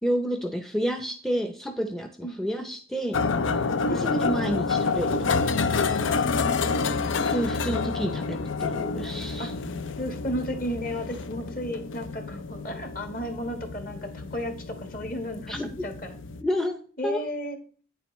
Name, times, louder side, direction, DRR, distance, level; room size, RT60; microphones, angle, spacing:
voice 1, 0.0-3.2 3.9-5.3 5.9-6.0 7.3-9.7 15.5-15.7 16.4-17.3, equal, ahead, 6 dB, 0.5 m, -30 dB
sound 1, 3.1-16.4, left 4 dB, 80° left, 0.6 m, -28 dB
voice 2, 6.3-7.2 9.4-9.5 10.0-15.5 15.8-16.2 17.0-17.6, equal, 45° left, 7 dB, 1.4 m, -34 dB
9.2 x 7.6 x 3.1 m, 0.41 s
head